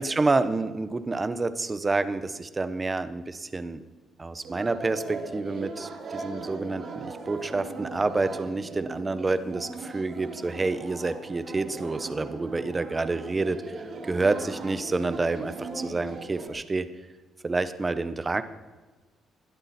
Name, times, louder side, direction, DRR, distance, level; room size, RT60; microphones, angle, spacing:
voice 1, 0.0-3.8 4.2-16.9 17.4-18.4, right 3 dB, 25° right, 12 dB, 1.1 m, -28 dB
sound 1, 4.4-16.5, right 3 dB, 55° right, 2.8 m, -39 dB
21.0 x 12.5 x 4.4 m, 1.3 s
cardioid pair, 90°, 0 cm